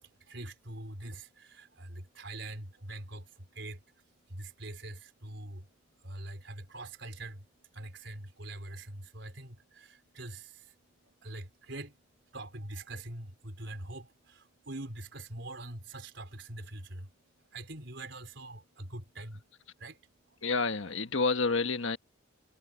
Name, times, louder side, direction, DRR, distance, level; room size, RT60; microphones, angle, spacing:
voice 1, 0.0-20.5, right 1 dB, 60° right, 4.2 m, -44 dB
voice 2, 20.4-22.0, left 4 dB, 75° left, 1.5 m, -29 dB
head